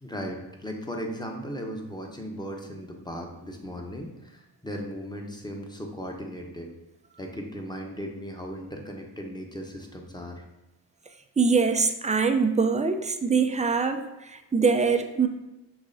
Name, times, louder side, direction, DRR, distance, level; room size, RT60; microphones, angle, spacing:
voice 1, 0.0-6.7 7.2-10.4, equal, 10° left, 2 dB, 1.0 m, -37 dB
voice 2, 11.4-14.0 14.3-15.3, right 5 dB, 15° right, 6 dB, 0.4 m, -23 dB
6.1 x 3.1 x 2.6 m, 1.0 s
supercardioid pair, 45°, 44 cm